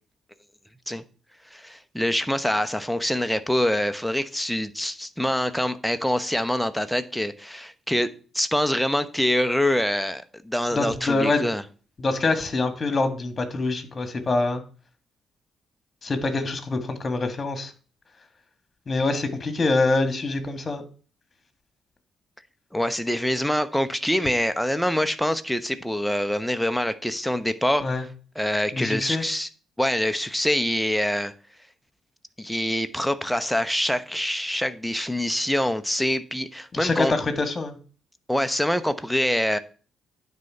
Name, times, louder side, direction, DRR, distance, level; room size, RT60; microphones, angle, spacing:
voice 1, 1.5-8.1 8.3-11.6 22.7-27.9 28.4-29.5 29.8-31.3 32.4-37.1 38.3-39.6, left 1 dB, 5° left, 1.0 m, -25 dB
voice 2, 10.7-11.5 12.0-14.6 16.0-17.7 18.9-20.8 27.8-28.0 28.7-29.2 36.7-37.8, left 3 dB, 40° left, 1.8 m, -25 dB
9.6 x 4.1 x 5.7 m
hypercardioid pair, 40°, 0 cm